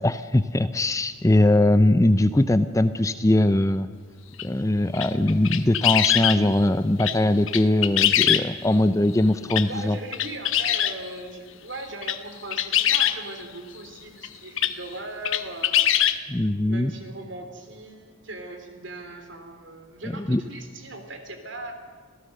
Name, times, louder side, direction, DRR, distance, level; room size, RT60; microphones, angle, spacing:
voice 1, 0.0-3.9 4.4-10.0 16.3-16.9 20.2-20.4, left 1 dB, 15° left, 12 dB, 0.5 m, -21 dB
sound 1, 4.4-4.5 4.9-6.4 7.0-7.2 7.5-8.7 9.5-9.7 10.1-11.0 11.8-12.2 12.5-13.2 14.2-14.3 14.6-14.7 15.2-16.2, left 11 dB, 70° left, 1.0 m, -22 dB
voice 2, 9.7-15.9 16.7-21.7, right 2 dB, 60° right, 6 dB, 3.1 m, -39 dB
26.0 x 16.5 x 6.6 m, 1.5 s
head